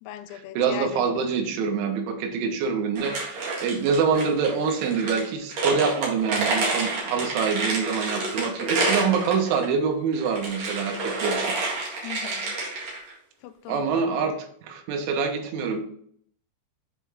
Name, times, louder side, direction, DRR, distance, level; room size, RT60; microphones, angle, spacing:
voice 1, 0.0-1.0 12.0-12.6 13.4-14.2, left 11 dB, 85° left, 10 dB, 2.8 m, -38 dB
voice 2, 0.6-11.5 13.7-14.4 14.6-15.8, right 5 dB, 75° right, 4 dB, 3.2 m, -25 dB
sound 1, 3.0-9.7 10.1-13.1, right 3 dB, 60° right, 1.9 m, -29 dB
8.3 x 4.4 x 3.4 m, 0.62 s
omnidirectional pair, 5.8 m